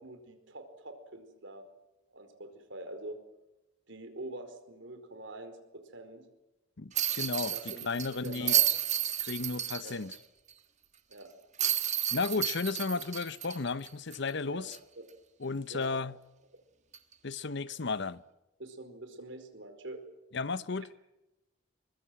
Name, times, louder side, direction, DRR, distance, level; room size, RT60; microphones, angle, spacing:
voice 1, 0.0-1.6 2.1-3.2 3.9-6.3 7.5-8.6 9.8-10.0 11.1-11.3 14.5-14.7 15.0-15.1 15.7-15.9 18.6-20.0 20.7-20.8, right 2 dB, 65° right, 4.7 m, -45 dB
voice 2, 6.8-7.5 7.8-8.5 9.2-10.1 12.1-14.8 15.4-16.1 17.2-18.2 20.3-20.9, left 4 dB, 65° left, 0.9 m, -34 dB
sound 1, 6.9-10.2 10.5-10.6 11.6-14.3 14.7-14.8 16.9-17.1, right 10 dB, 40° right, 1.6 m, -31 dB
24.0 x 22.5 x 7.8 m
head